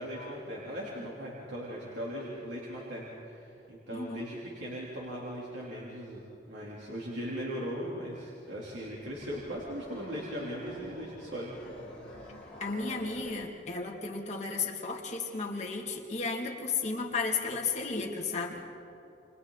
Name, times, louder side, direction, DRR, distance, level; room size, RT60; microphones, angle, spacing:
voice 1, 0.0-11.5, equal, 75° right, -6 dB, 3.7 m, -39 dB
voice 2, 3.9-4.3 12.6-18.6, left 4 dB, 40° left, -1 dB, 2.5 m, -34 dB
sound 1, 8.8-13.5, equal, 5° left, 7.1 m, -49 dB
29.5 x 27.5 x 4.2 m, 2.8 s
head